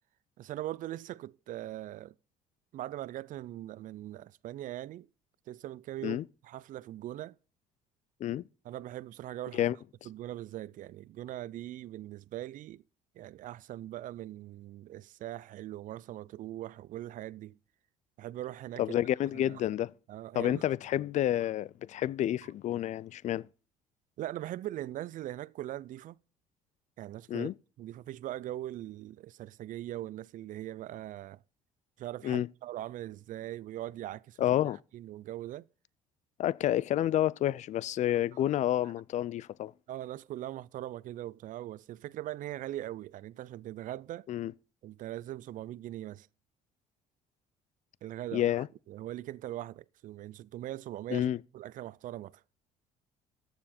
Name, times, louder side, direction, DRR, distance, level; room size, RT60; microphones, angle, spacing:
voice 1, 0.4-2.1 2.7-5.1 5.5-7.4 8.6-9.6 10.1-12.8 13.2-17.6 18.2-18.8 19.5-19.6 20.1-20.6 24.2-26.2 27.0-27.5 27.8-31.4 32.0-34.4 34.9-35.7 39.9-44.3 44.8-46.3 48.0-48.6 48.9-51.3 51.5-52.4, right 13 dB, 55° right, 0.5 m, -41 dB
voice 2, 18.8-19.9 20.3-23.5 27.3-27.5 32.2-32.5 34.4-34.8 36.4-39.7 44.3-44.5 48.3-48.7 51.1-51.4, left 12 dB, 50° left, 0.4 m, -29 dB
14.0 x 6.9 x 4.3 m
supercardioid pair, 75°, 16 cm